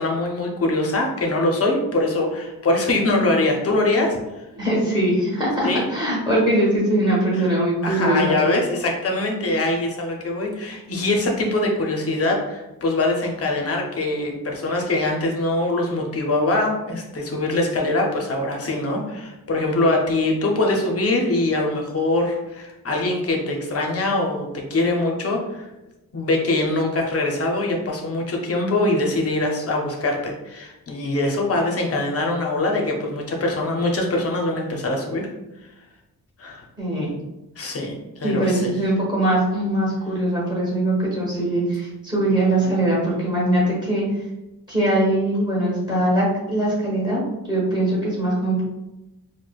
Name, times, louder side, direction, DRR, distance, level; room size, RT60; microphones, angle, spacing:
voice 1, 0.0-4.2 5.6-5.9 7.3-7.5 7.8-25.7 26.1-35.3 36.4-36.6 37.6-38.7 42.6-42.7, left 2 dB, 40° left, 0 dB, 0.6 m, -23 dB
voice 2, 4.5-8.3 36.8-37.1 38.2-44.0 44.7-47.2 47.5-48.6, right 1 dB, 10° right, -5 dB, 1.0 m, -21 dB
4.8 x 2.1 x 2.2 m, 0.98 s
wide cardioid pair, 180°, 38 cm